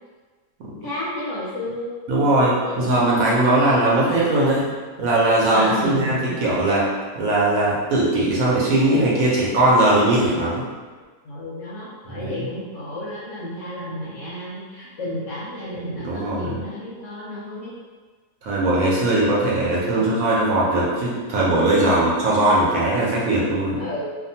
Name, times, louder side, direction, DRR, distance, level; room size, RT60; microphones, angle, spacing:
voice 1, 0.8-1.9 2.6-2.9 5.5-6.4 11.2-17.7 19.4-20.1 21.6-22.2 23.8-24.0, left 1 dB, 65° left, -7 dB, 0.8 m, -32 dB
voice 2, 2.1-4.6 5.0-6.8 7.1-10.6 12.2-12.4 16.0-16.5 18.4-23.8, right 1 dB, 70° right, -6 dB, 1.0 m, -19 dB
2.6 x 2.2 x 2.7 m, 1.4 s
omnidirectional pair, 1.6 m